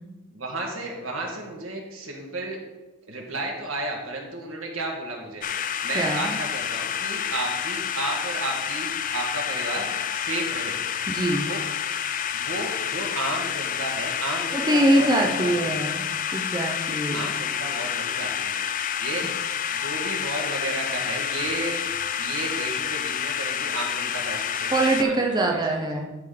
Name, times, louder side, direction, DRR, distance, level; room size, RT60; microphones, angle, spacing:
voice 1, 0.3-2.6 3.1-5.5 5.8-10.8 11.4-11.6 12.3-15.9 17.1-18.6 19.0-19.2 19.8-21.9 22.2-25.8, right 2 dB, 80° right, 0 dB, 1.8 m, -33 dB
sound 1, 5.4-25.0, left 9 dB, 40° left, 0.4 m, -29 dB
voice 2, 5.9-6.3 11.1-11.5 14.5-16.1 16.3-17.3 24.7-26.1, right 1 dB, 20° right, 1 dB, 0.7 m, -23 dB
12.5 x 5.1 x 3.9 m, 1.1 s
head